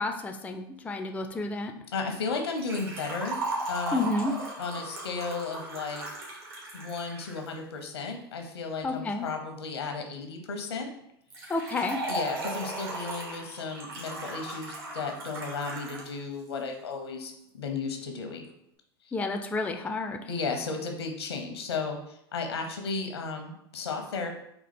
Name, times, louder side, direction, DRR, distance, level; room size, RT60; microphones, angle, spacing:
voice 1, 0.0-1.7 3.9-4.3 8.8-9.3 11.5-12.0 19.1-20.3, left 2 dB, 10° left, 6 dB, 0.4 m, -30 dB
voice 2, 1.9-3.4 3.7-4.1 4.6-6.0 6.7-10.9 11.4-11.5 12.1-18.5 20.3-24.3, left 4 dB, 85° left, 4 dB, 0.8 m, -34 dB
Liquid, 2.6-7.6 11.3-16.1 16.4-16.5 17.4-17.5, right 2 dB, 70° right, 1.7 m, -37 dB
4.4 x 2.4 x 4.3 m, 0.76 s
hypercardioid pair, 95°, 13 cm